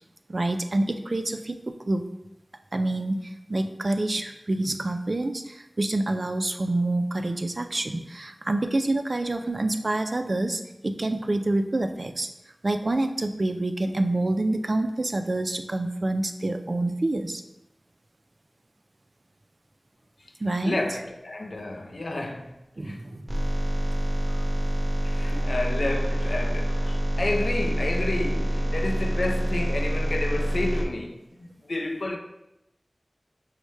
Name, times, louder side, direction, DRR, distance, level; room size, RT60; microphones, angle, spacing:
voice 1, 0.3-2.0 2.7-12.3 12.6-17.4 20.4-20.8 22.8-23.3, right 2 dB, 60° right, 0.3 m, -27 dB
voice 2, 20.6-22.6 22.8-23.0 24.3-24.5 25.0-32.2, left 2 dB, 90° left, 0.4 m, -30 dB
sound 1, 23.3-30.9, right 1 dB, 20° right, 0.9 m, -26 dB
5.3 x 2.1 x 3.1 m
wide cardioid pair, 50°, 0 cm